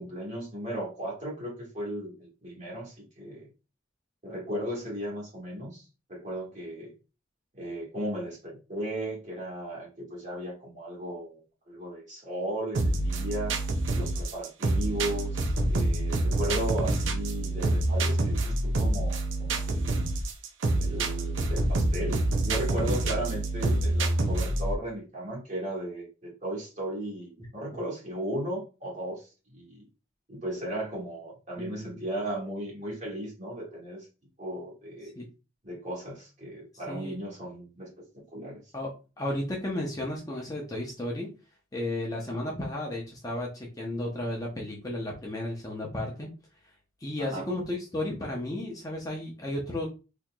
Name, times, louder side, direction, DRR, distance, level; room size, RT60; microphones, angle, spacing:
voice 1, 0.0-3.5 4.2-5.8 6.1-6.9 7.5-13.6 13.9-20.0 20.8-29.3 29.5-29.8 30.3-34.1 34.4-35.1 35.6-37.9 38.1-38.6 47.2-47.5, right 1 dB, 35° right, -4 dB, 1.7 m, -36 dB
sound 1, 12.7-24.8, right 2 dB, 75° right, 0.6 m, -27 dB
voice 2, 31.6-32.0 35.1-35.2 36.9-37.1 38.7-38.9 39.2-41.3 41.7-46.3 47.0-49.9, left 1 dB, 20° left, -2 dB, 0.7 m, -33 dB
4.1 x 2.9 x 2.2 m, 0.31 s
head